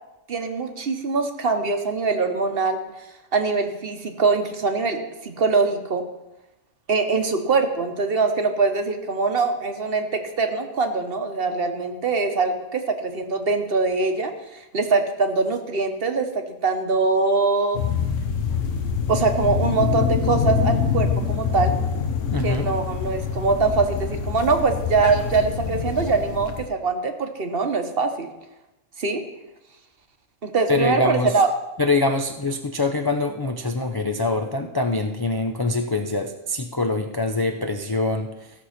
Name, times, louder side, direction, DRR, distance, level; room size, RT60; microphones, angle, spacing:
voice 1, 0.3-2.8 3.3-6.0 6.9-17.8 19.1-21.8 22.4-28.3 29.0-29.2 30.4-31.5, right 4 dB, 50° right, 7 dB, 1.1 m, -23 dB
sound 1, 17.7-26.7, left 6 dB, 70° left, 1.4 m, -25 dB
voice 2, 22.3-22.7 30.7-31.3 31.8-38.3, left 2 dB, 35° left, 4 dB, 0.4 m, -24 dB
15.0 x 6.5 x 5.8 m, 0.99 s
omnidirectional pair, 1.3 m